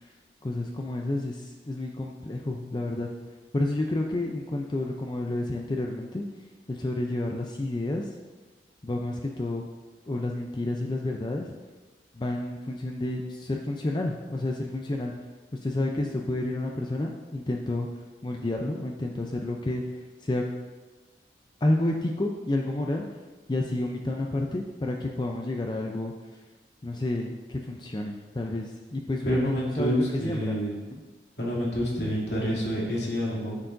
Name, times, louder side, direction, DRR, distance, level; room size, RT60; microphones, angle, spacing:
voice 1, 0.4-3.1 3.5-6.2 6.7-8.1 8.8-9.6 10.1-11.5 12.1-15.1 15.6-17.9 18.2-19.8 20.2-20.4 21.6-23.0 23.5-26.1 26.8-30.7, left 2 dB, 25° left, 1 dB, 0.5 m, -30 dB
voice 2, 29.2-30.8 31.4-33.6, equal, 70° left, -5 dB, 2.6 m, -28 dB
11.0 x 6.9 x 2.6 m, 1.3 s
head